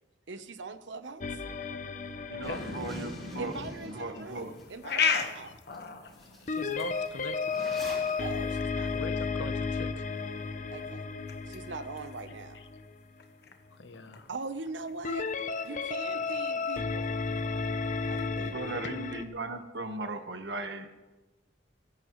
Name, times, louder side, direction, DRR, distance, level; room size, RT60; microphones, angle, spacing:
voice 1, 0.3-1.3 3.4-5.5 8.2-8.9 10.7-11.0 11.5-12.6 14.3-15.3 15.6-17.1 18.0-18.8, right 3 dB, 85° right, 10 dB, 1.0 m, -41 dB
sound 1, 1.2-4.5 6.5-13.0 15.0-19.2, left 4 dB, 45° left, 0.8 m, -34 dB
voice 2, 2.3-4.5 18.4-20.9, right 2 dB, 70° right, 7 dB, 1.4 m, -38 dB
Zipper (clothing), 2.4-4.6 5.1-5.2 5.7-5.8 6.1-8.1, equal, ahead, 4.8 m, -43 dB
sound 2, 4.2-18.3, left 6 dB, 60° left, 1.3 m, -39 dB
voice 3, 6.4-7.5 8.9-10.1 12.5-12.6 13.7-14.3 18.8-18.9, left 3 dB, 75° left, 11 dB, 1.0 m, -41 dB
23.0 x 11.5 x 3.2 m, 1.1 s
head